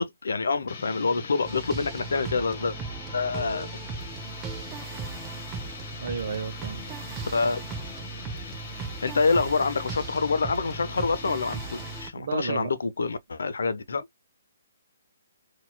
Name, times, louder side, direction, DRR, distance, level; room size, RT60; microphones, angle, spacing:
voice 1, 0.0-2.8 3.1-3.7 7.3-7.6 9.0-14.1, left 4 dB, 70° left, 0.6 m, -26 dB
sound 1, 0.7-12.1, left 5 dB, 45° left, 1.3 m, -42 dB
sound 2, 1.4-12.1, right 5 dB, 20° right, 0.6 m, -38 dB
voice 2, 6.0-6.8 12.1-12.7, right 6 dB, 55° right, 0.7 m, -32 dB
4.1 x 2.4 x 2.2 m
figure-of-eight pair, 135°, 0 cm